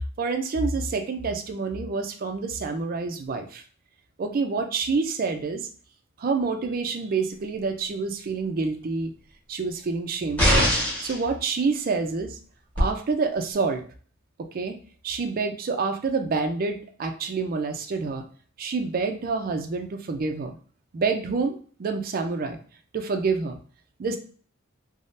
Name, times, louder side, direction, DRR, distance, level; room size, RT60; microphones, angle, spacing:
voice 1, 0.2-3.6 4.2-5.7 6.2-9.1 9.5-10.7 11.0-12.4 12.8-13.8 14.4-14.8 15.0-18.2 18.6-20.5 20.9-22.6 22.9-23.6 24.0-24.2, right 4 dB, 45° right, 6 dB, 0.4 m, -27 dB
sound 1, 10.4-11.2 12.8-12.9, equal, 5° left, 1.1 m, -21 dB
3.5 x 2.0 x 2.6 m, 0.43 s
head